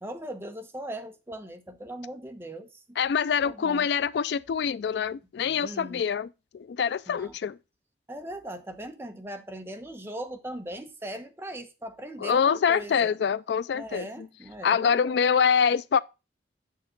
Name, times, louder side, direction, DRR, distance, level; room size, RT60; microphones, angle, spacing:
voice 1, 0.0-2.8 3.4-3.9 5.4-6.0 7.1-7.4 8.1-13.2 13.7-15.2, right 1 dB, 15° right, 1.0 m, -39 dB
voice 2, 3.0-6.3 6.5-7.6 12.2-14.3 14.6-16.0, left 7 dB, 65° left, 0.3 m, -25 dB
7.4 x 6.6 x 3.8 m
head